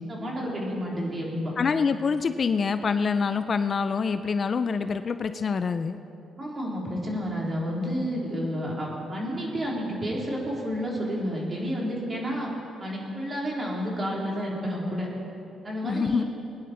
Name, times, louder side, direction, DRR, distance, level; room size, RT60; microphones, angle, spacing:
voice 1, 0.1-1.5 6.4-12.5 12.8-15.1 15.6-16.2, equal, 30° right, -3 dB, 3.7 m, -30 dB
voice 2, 1.6-6.0 15.8-16.2, left 5 dB, 45° left, 10 dB, 0.5 m, -26 dB
21.5 x 10.0 x 4.4 m, 2.7 s
cardioid pair, 90°, 0 cm